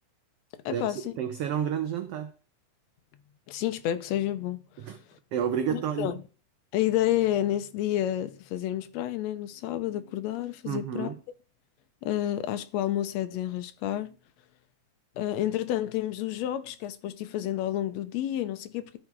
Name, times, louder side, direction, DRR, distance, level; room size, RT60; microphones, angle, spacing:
voice 1, 0.7-1.1 3.5-4.6 5.7-6.2 6.7-11.1 12.0-14.1 15.2-19.0, left 12 dB, 80° left, 1.6 m, -30 dB
voice 2, 1.2-2.3 4.8-5.0 5.3-6.1 10.6-11.2, right 8 dB, 75° right, 1.3 m, -30 dB
13.0 x 4.9 x 4.6 m
omnidirectional pair, 3.6 m